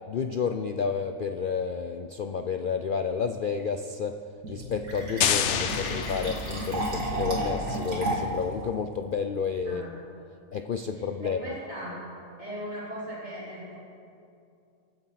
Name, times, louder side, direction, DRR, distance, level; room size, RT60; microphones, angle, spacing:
voice 1, 0.1-4.2 4.5-9.9 10.5-11.6, left 6 dB, 80° left, 7 dB, 0.4 m, -30 dB
Fill (with liquid), 4.4-8.4, right 1 dB, 70° right, 3.3 m, -32 dB
sound 1, 5.2-7.0, left 9 dB, 60° left, 0.9 m, -28 dB
voice 2, 10.9-12.0 12.4-13.8, equal, 30° right, -8 dB, 4.4 m, -38 dB
25.0 x 8.8 x 5.8 m, 2.6 s
omnidirectional pair, 1.6 m